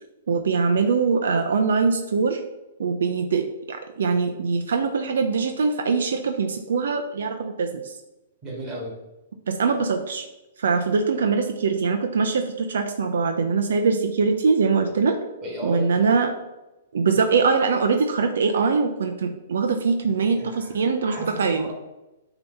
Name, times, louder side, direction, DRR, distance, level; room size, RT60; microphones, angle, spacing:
voice 1, 0.3-2.4 2.8-7.9 9.5-10.3 10.6-15.2 15.6-16.3 16.9-21.7, right 4 dB, 80° right, 5 dB, 0.7 m, -22 dB
voice 2, 8.4-8.9 15.4-16.1 20.3-20.7 21.0-21.7, right 1 dB, 20° right, -4 dB, 2.6 m, -34 dB
8.9 x 3.0 x 5.5 m, 1.0 s
hypercardioid pair, 155°, 0 cm